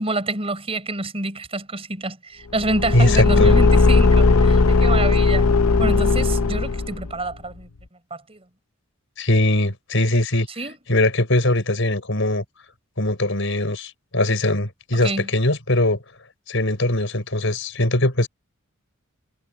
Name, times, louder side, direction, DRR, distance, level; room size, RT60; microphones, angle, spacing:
voice 1, 0.0-5.5 5.8-7.7 8.1-8.4 10.6-10.8 15.0-15.3, right 2 dB, 30° right, 4.8 m, -27 dB
Car / Engine, 2.6-7.1, left 3 dB, 85° left, 0.8 m, -17 dB
voice 2, 2.9-3.5 9.2-10.5 10.9-12.4 13.0-16.0 16.5-18.3, left 1 dB, 65° left, 6.6 m, -21 dB
head